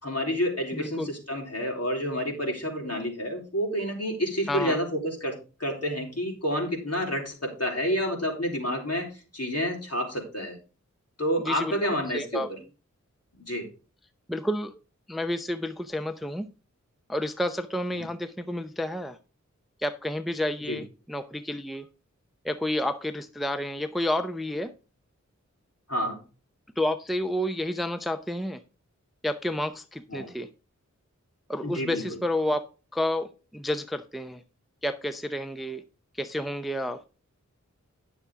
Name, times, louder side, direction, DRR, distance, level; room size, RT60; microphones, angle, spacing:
voice 1, 0.0-5.3 5.6-9.1 9.3-10.6 11.2-12.4 13.4-13.7 17.9-18.0 20.7-20.8 25.9-26.2 30.1-30.3 31.6-32.0, equal, 55° left, 3.9 m, -29 dB
voice 2, 0.7-1.1 4.5-4.8 11.4-11.8 12.1-12.5 14.3-14.7 15.1-16.5 17.1-19.2 19.8-21.9 22.4-24.7 26.8-28.6 29.2-30.5 31.5-32.6 32.9-33.3 33.5-34.4 34.8-35.8 36.1-37.0, left 1 dB, ahead, 0.7 m, -30 dB
10.5 x 7.0 x 3.7 m
wide cardioid pair, 50°, 30 cm